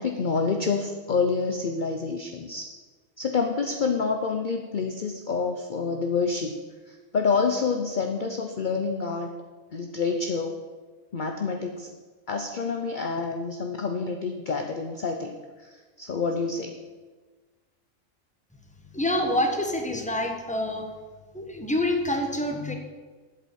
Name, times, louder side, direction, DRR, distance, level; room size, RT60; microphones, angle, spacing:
voice 1, 0.0-2.7 3.2-6.6 6.9-9.3 9.7-10.6 11.1-11.9 12.3-15.4 15.6-16.8, left 4 dB, 45° left, 5 dB, 0.8 m, -28 dB
voice 2, 18.9-20.8 21.3-22.7, left 1 dB, 5° left, 3 dB, 1.2 m, -26 dB
8.4 x 8.0 x 8.5 m, 1.3 s
omnidirectional pair, 1.4 m